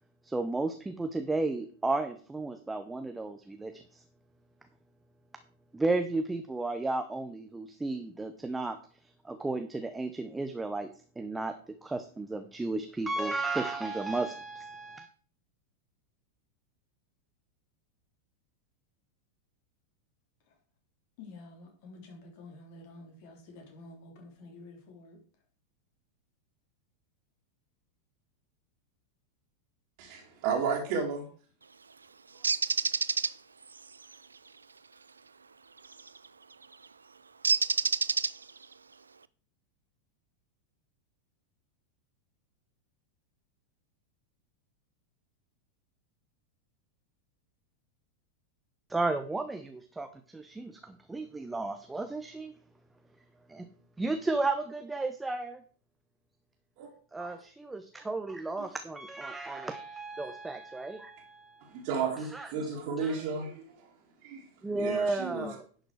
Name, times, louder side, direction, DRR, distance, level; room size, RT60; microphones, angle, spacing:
voice 1, 0.2-4.0 5.7-8.8 9.2-10.9 11.2-15.1 48.9-52.5 53.5-53.7 54.0-55.6 57.1-61.8 62.3-62.7 63.0-63.1 64.6-65.6, right 2 dB, 10° right, 0.8 m, -33 dB
voice 2, 21.2-25.2, left 2 dB, 45° left, 3.7 m, -50 dB
voice 3, 30.0-31.2 32.3-32.5 56.8-56.9 57.2-57.3 60.2-60.3 61.7-63.9 64.2-64.5 64.8-65.5, right 5 dB, 45° right, 2.5 m, -33 dB
Bird, 32.4-33.3 35.9-36.2 37.4-38.6, right 4 dB, 75° right, 0.4 m, -27 dB
11.0 x 6.6 x 4.8 m
figure-of-eight pair, 90°, 0 cm